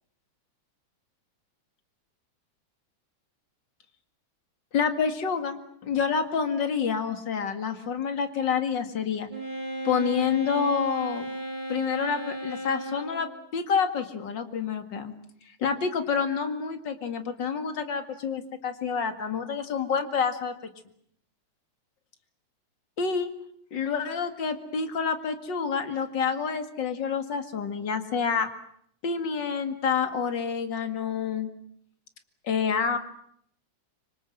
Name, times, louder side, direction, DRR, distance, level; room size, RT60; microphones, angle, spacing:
voice 1, 4.7-9.3 9.8-11.3 11.7-15.1 15.6-20.5 23.0-23.3 23.7-28.5 29.0-31.5 32.4-33.0, left 6 dB, 40° left, 8 dB, 2.4 m, -28 dB
Wind instrument woodwind instrument, 9.3-13.3, right 1 dB, 10° right, 7.3 m, -35 dB
26.0 x 25.0 x 7.8 m, 0.68 s
omnidirectional pair, 3.5 m